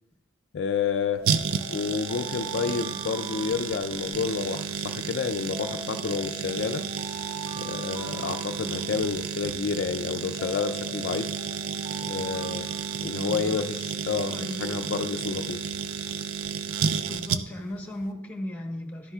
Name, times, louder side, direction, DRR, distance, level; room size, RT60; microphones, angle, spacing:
voice 1, 0.5-1.3 1.7-6.9 7.6-11.3 12.1-12.7 13.0-15.6, left 5 dB, 55° left, 8 dB, 0.4 m, -29 dB
sound 1, 1.2-4.4 5.5-9.3 10.4-13.6, right 2 dB, 20° right, 1.0 m, -43 dB
sound 2, 1.2-17.8 18.0-18.1, right 7 dB, 85° right, 0.5 m, -32 dB
voice 2, 13.2-13.6 14.3-14.8 17.1-19.1, left 1 dB, 10° left, 3 dB, 1.1 m, -36 dB
12.0 x 9.8 x 2.3 m, 0.90 s
head